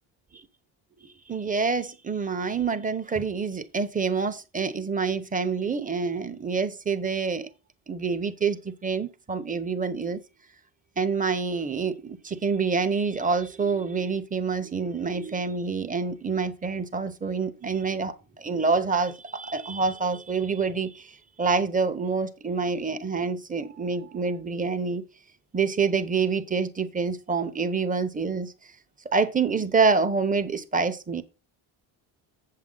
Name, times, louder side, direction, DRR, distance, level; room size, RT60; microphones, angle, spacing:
voice 1, 1.0-7.5 7.9-10.2 11.0-25.0 25.5-28.5 29.0-31.2, right 4 dB, 15° right, 0.8 m, -27 dB
8.1 x 7.6 x 3.8 m
cardioid pair, 135°, 46 cm